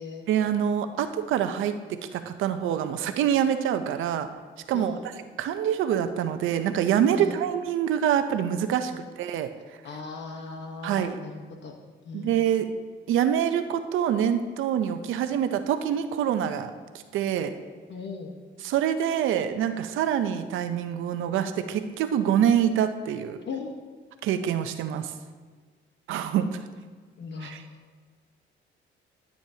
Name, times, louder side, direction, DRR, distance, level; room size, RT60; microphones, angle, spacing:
voice 1, 0.3-4.3 4.7-5.0 5.4-8.9 9.2-9.5 10.8-11.2 12.1-12.7 13.1-16.7 17.1-17.5 18.6-23.4 24.2-25.1 26.1-26.6 27.4-27.6, right 9 dB, 85° right, 9 dB, 0.7 m, -25 dB
voice 2, 4.7-5.0 7.1-7.4 8.8-9.0 9.8-11.8 12.0-12.4 17.9-18.3 23.5-23.8 27.2-27.8, left 4 dB, 65° left, 3 dB, 1.2 m, -38 dB
13.5 x 8.6 x 2.8 m, 1.5 s
cardioid pair, 90°, 20 cm